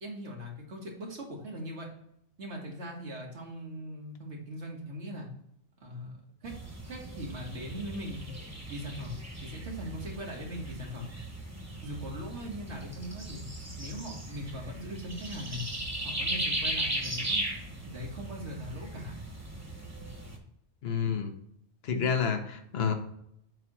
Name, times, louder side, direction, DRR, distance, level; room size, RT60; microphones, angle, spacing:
voice 1, 0.0-1.9 2.4-5.3 5.8-6.5 6.9-8.3 8.7-11.1 11.8-13.4 13.8-15.6 16.0-17.4 17.9-19.2, equal, 80° right, 0 dB, 1.9 m, -40 dB
sound 1, 6.4-20.4, right 1 dB, 15° right, 1.1 m, -37 dB
voice 2, 20.8-21.3 21.8-22.9, left 6 dB, 65° left, 6 dB, 1.1 m, -29 dB
7.6 x 3.0 x 5.9 m, 0.73 s
omnidirectional pair, 1.1 m